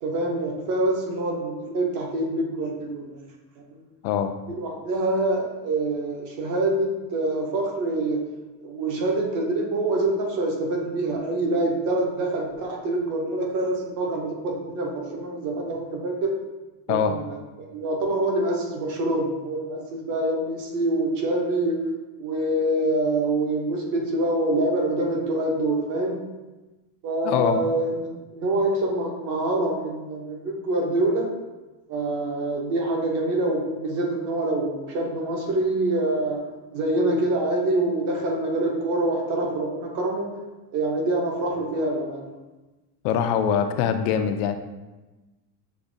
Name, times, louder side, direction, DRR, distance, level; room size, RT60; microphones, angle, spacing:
voice 1, 0.0-3.2 4.5-8.3 8.6-16.3 16.9-21.8 22.2-26.2 27.0-28.1 28.3-31.3 31.9-36.4 36.7-40.3 40.7-42.3, right 2 dB, 40° right, 1 dB, 0.7 m, -25 dB
voice 2, 27.2-27.6 43.0-44.6, left 8 dB, 75° left, 8 dB, 0.5 m, -23 dB
6.7 x 2.8 x 2.6 m, 1.1 s
cardioid pair, 170°, 48 cm